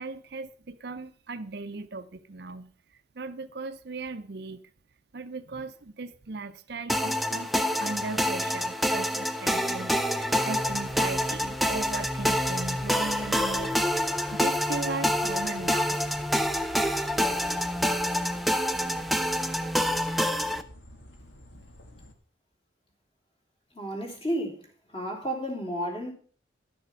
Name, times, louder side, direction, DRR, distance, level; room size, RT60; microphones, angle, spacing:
voice 1, 0.0-2.7 3.1-4.6 5.1-16.0, right 3 dB, 60° right, 0.6 m, -38 dB
sound 1, 6.9-20.6, equal, ahead, 0.5 m, -27 dB
sound 2, 10.5-22.1, left 1 dB, 75° left, 1.8 m, -48 dB
voice 2, 23.7-26.1, equal, 30° left, 3.3 m, -32 dB
11.5 x 6.7 x 5.8 m
head